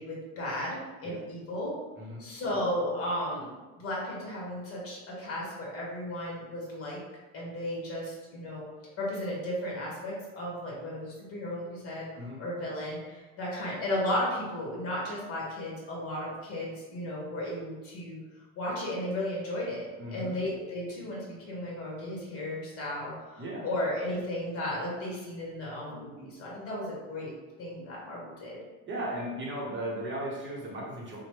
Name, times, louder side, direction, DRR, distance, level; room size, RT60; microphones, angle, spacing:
voice 1, 0.0-1.7 2.2-7.0 7.3-8.7 9.0-18.2 18.5-27.3 27.6-28.6, left 1 dB, 30° left, -4 dB, 1.2 m, -34 dB
voice 2, 20.0-20.3 23.4-23.7 28.9-31.2, right 1 dB, 25° right, -4 dB, 1.0 m, -36 dB
2.9 x 2.2 x 3.0 m, 1.2 s
hypercardioid pair, 90°, 48 cm